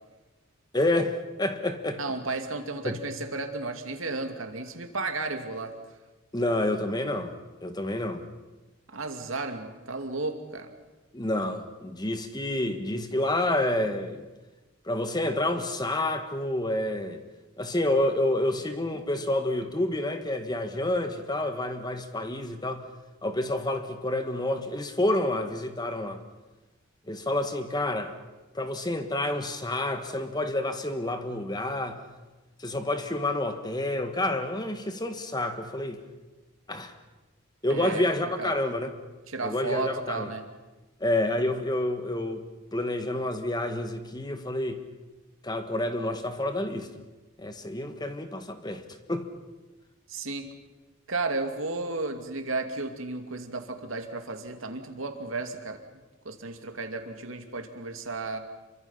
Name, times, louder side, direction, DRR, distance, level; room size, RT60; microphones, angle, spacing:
voice 1, 0.7-2.0 2.8-3.0 6.3-7.3 7.6-8.2 11.1-14.3 14.8-17.2 17.6-22.8 23.2-26.2 27.1-28.2 28.5-32.0 32.6-36.0 36.7-36.9 37.6-38.9 39.4-40.3 41.0-42.4 42.7-44.8 45.4-46.9 47.4-48.8 49.1-49.3, left 1 dB, 20° left, 1.7 m, -28 dB
voice 2, 2.0-5.7 8.9-10.7 37.7-38.0 38.4-38.5 39.3-40.4 50.1-50.5 51.1-55.8 56.2-58.4, right 3 dB, 80° right, 2.5 m, -33 dB
27.5 x 24.0 x 5.8 m
head